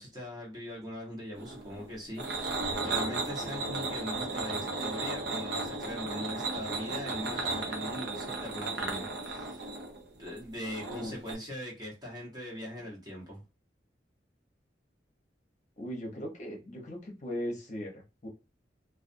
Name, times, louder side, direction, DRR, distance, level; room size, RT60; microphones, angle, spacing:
voice 1, 0.0-9.6 10.2-13.4, left 1 dB, 25° right, 1.0 m, -41 dB
sound 1, 1.4-11.3, right 3 dB, 65° right, 0.7 m, -35 dB
voice 2, 15.8-18.3, equal, 40° left, 0.8 m, -39 dB
2.4 x 2.3 x 2.5 m
head